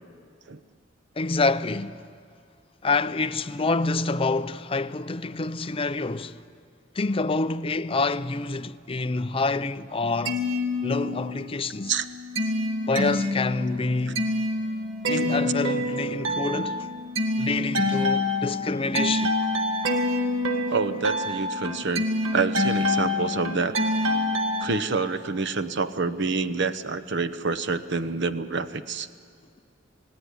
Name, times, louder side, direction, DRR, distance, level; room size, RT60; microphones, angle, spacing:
voice 1, 1.2-2.0 2.8-6.4 7.0-10.4 10.8-11.9 12.9-14.3 15.1-17.1 17.4-19.4, left 3 dB, 30° left, 0.5 m, -27 dB
sound 1, 10.0-11.5 11.8-24.6, left 1 dB, 85° right, 1.9 m, -27 dB
voice 2, 20.7-22.0 22.3-23.7 24.6-29.1, right 4 dB, 60° right, 0.9 m, -27 dB
28.5 x 17.5 x 9.9 m
head